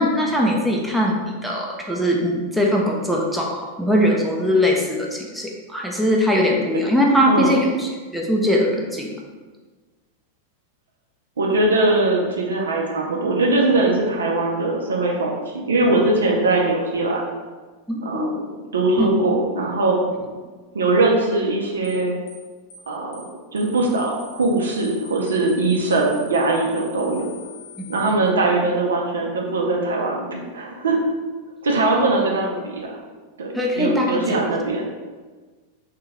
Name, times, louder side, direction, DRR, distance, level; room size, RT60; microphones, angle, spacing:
voice 1, 0.0-9.1 17.9-18.3 19.0-19.1 27.8-28.0 33.5-34.4, equal, ahead, -2 dB, 0.6 m, -21 dB
voice 2, 7.3-7.6 11.4-17.2 18.0-18.3 18.7-20.0 20.7-22.1 22.9-23.2 23.5-27.3 27.9-31.0 31.6-32.8 33.4-34.8, right 2 dB, 70° right, -1 dB, 0.7 m, -21 dB
sound 1, 21.8-22.0 22.3-22.4 22.7-22.9 23.1-23.3 23.6-28.1, left 2 dB, 40° left, 0.8 m, -43 dB
3.4 x 3.3 x 3.2 m, 1.4 s
figure-of-eight pair, 90°, 0 cm